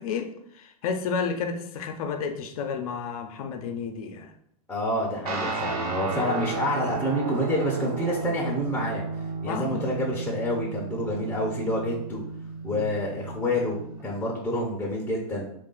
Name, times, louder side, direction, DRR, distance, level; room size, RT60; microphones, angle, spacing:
voice 1, 0.0-4.3 9.4-9.9 12.7-12.9, left 5 dB, 70° left, 6 dB, 0.6 m, -31 dB
voice 2, 4.7-9.0 9.4-12.2 12.6-15.4, left 1 dB, 10° left, -3 dB, 0.6 m, -28 dB
Guitar, 5.3-14.0, right 4 dB, 80° right, 1.1 m, -33 dB
3.3 x 2.5 x 3.7 m, 0.71 s
supercardioid pair, 135°, 19 cm